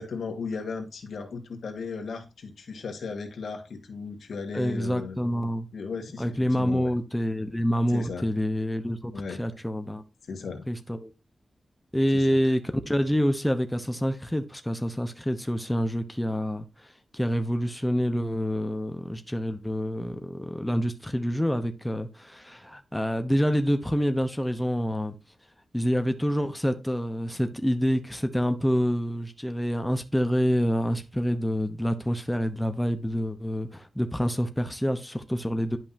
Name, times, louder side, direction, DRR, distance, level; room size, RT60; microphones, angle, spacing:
voice 1, 0.0-5.2 5.7-6.9 7.9-8.3 9.1-9.4 10.3-10.7 12.1-12.5, left 4 dB, 90° left, 1.7 m, -36 dB
voice 2, 4.5-5.7 6.2-10.0 10.7-11.1 11.9-16.6 17.1-25.1 25.7-35.8, equal, 5° left, 0.9 m, -27 dB
11.0 x 5.6 x 2.7 m
wide cardioid pair, 150°, 0 cm